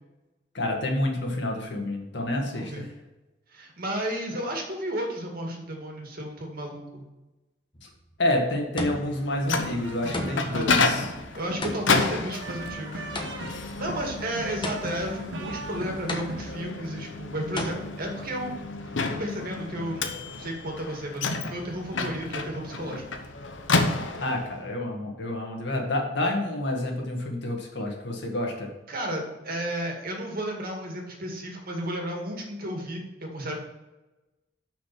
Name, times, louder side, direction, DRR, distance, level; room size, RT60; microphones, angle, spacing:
voice 1, 0.5-2.8 7.8-7.9 8.2-11.1 24.2-28.7, left 1 dB, 65° left, 1 dB, 1.9 m, -28 dB
voice 2, 2.5-2.9 3.5-7.1 10.4-10.7 11.4-18.6 19.1-20.1 20.3-23.0 24.2-24.4 28.9-33.6, right 1 dB, 50° right, 1 dB, 2.1 m, -33 dB
sound 1, 7.7-8.1 8.8-9.3 10.1-10.7 11.6-13.7 14.6-15.2 16.1-16.7 17.6-17.7, left 1 dB, 25° left, 1.2 m, -34 dB
Microwave oven, 9.1-24.6, left 3 dB, 85° left, 1.0 m, -30 dB
sound 2, 9.6-16.7, right 2 dB, 85° right, 1.2 m, -40 dB
6.9 x 6.2 x 6.0 m, 1.1 s
head